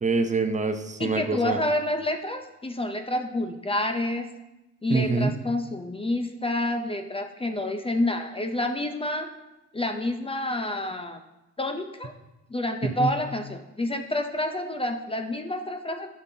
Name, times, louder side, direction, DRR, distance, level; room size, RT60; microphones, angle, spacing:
voice 1, 0.0-1.6 4.9-5.4 12.8-13.1, right 3 dB, 25° right, 6 dB, 0.6 m, -25 dB
voice 2, 1.0-4.3 4.8-9.3 9.7-11.2 11.6-12.1 12.5-16.1, left 1 dB, 20° left, 6 dB, 0.5 m, -28 dB
11.5 x 5.6 x 2.8 m, 0.98 s
cardioid pair, 90°, 30 cm